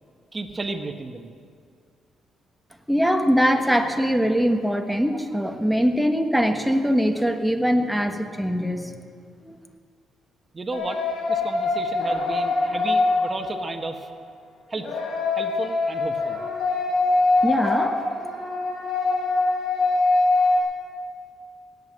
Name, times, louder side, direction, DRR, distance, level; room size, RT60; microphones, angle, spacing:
voice 1, 0.3-1.3 10.5-11.0 11.3-14.1 14.7-14.9 15.3-16.4 17.4-17.5, right 3 dB, 30° right, 5 dB, 1.4 m, -33 dB
voice 2, 2.9-8.9 9.4-9.6 17.4-18.0, equal, ahead, 6 dB, 1.3 m, -22 dB
sound 1, 10.7-13.8 14.7-20.6, left 3 dB, 70° left, 4.1 m, -23 dB
16.5 x 9.6 x 7.5 m, 2.1 s
cardioid pair, 90°, 0 cm